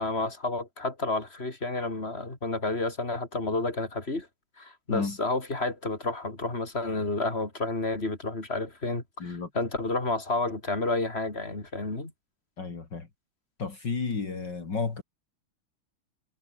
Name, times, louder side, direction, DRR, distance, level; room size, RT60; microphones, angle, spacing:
voice 1, 0.0-4.3 4.6-12.1, left 2 dB, 30° left, 4.7 m, -30 dB
voice 2, 9.2-9.5 12.6-13.1 13.6-15.0, left 4 dB, 55° left, 3.5 m, -32 dB
omnidirectional pair, 2.3 m